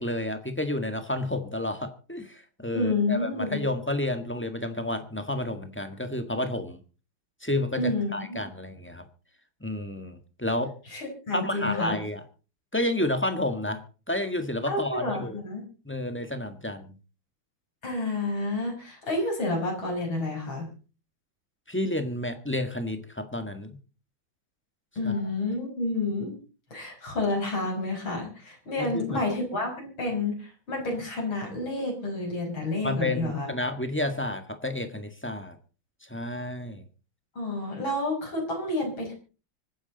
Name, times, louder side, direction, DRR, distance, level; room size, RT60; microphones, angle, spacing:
voice 1, 0.0-6.8 7.4-9.1 9.6-10.7 11.3-12.2 12.7-15.4 15.8-17.0 21.7-23.8 25.0-25.2 28.8-29.3 32.8-35.6 36.0-36.8, left 1 dB, 5° left, 8 dB, 1.5 m, -30 dB
voice 2, 2.7-3.6 7.8-8.4 10.9-12.0 14.7-15.6 17.8-20.7 25.0-26.4 26.7-33.5 37.4-39.1, left 2 dB, 90° left, 0 dB, 6.4 m, -29 dB
25.5 x 9.9 x 4.1 m, 0.36 s
omnidirectional pair, 2.1 m